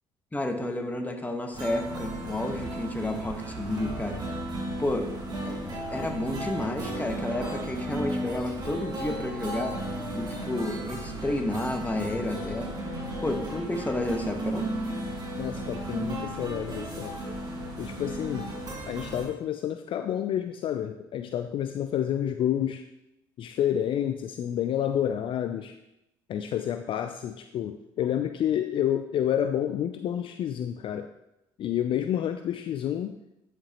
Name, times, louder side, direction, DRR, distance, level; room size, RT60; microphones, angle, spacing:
voice 1, 0.3-4.2 4.8-12.7 13.2-14.7, left 1 dB, 15° left, 4 dB, 1.2 m, -31 dB
sound 1, 1.5-19.3, right 1 dB, 40° right, 2.5 m, -35 dB
voice 2, 15.4-17.2 17.8-18.5 18.9-22.8 23.4-25.8 26.3-31.1 31.6-33.2, left 10 dB, 50° left, 8 dB, 0.4 m, -29 dB
10.0 x 5.1 x 3.0 m, 0.86 s
hypercardioid pair, 65°, 11 cm